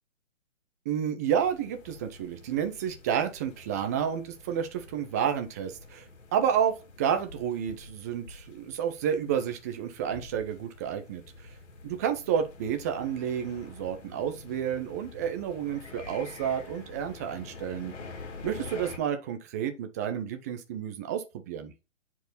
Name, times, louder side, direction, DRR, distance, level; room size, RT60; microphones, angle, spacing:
voice 1, 0.9-6.0 6.3-11.2 11.8-17.9 18.4-21.7, right 8 dB, 15° right, 0.6 m, -30 dB
sound 1, 1.3-19.0, left 3 dB, 60° left, 3.0 m, -47 dB
10.0 x 4.6 x 4.1 m
figure-of-eight pair, 135°, 39 cm